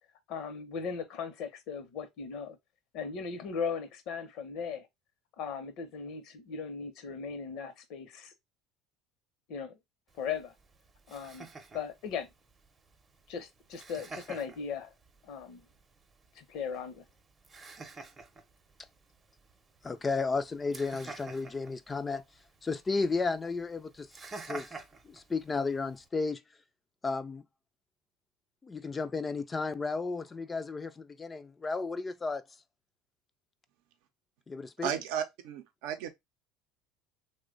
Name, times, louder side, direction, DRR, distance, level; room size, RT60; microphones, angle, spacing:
voice 1, 0.3-2.6 2.9-4.9 5.4-8.3 9.5-9.8 10.2-10.5 11.1-11.5 11.7-12.3 13.3-14.9 15.2-15.5 16.4-17.0, left 6 dB, 65° left, 0.7 m, -38 dB
Laughter, 10.1-26.1, right 3 dB, 25° right, 0.6 m, -50 dB
voice 2, 19.8-22.2 22.6-24.1 24.4-26.4 27.0-27.4 28.6-32.4 34.5-34.9, left 4 dB, 20° left, 0.3 m, -33 dB
voice 3, 34.8-36.1, right 9 dB, 75° right, 0.5 m, -34 dB
3.0 x 2.2 x 3.7 m
supercardioid pair, 90°, 0 cm